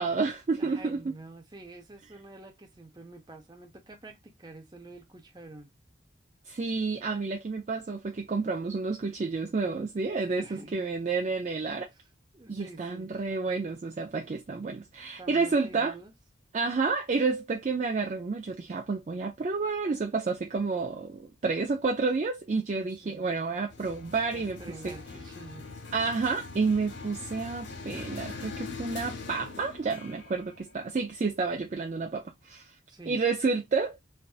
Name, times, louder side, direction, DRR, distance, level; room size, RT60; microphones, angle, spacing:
voice 1, 0.0-1.0 6.5-11.9 12.5-16.0 16.5-24.6 24.8-24.9 25.9-32.7 33.1-34.0, right 4 dB, 35° right, 0.4 m, -30 dB
voice 2, 0.6-5.7 10.4-10.8 11.9-12.1 12.3-13.1 15.2-16.1 22.7-23.3 24.3-25.7 32.9-33.2, right 2 dB, 20° right, 0.8 m, -47 dB
sound 1, 23.7-31.7, left 4 dB, 60° left, 0.6 m, -42 dB
3.3 x 2.6 x 2.3 m
head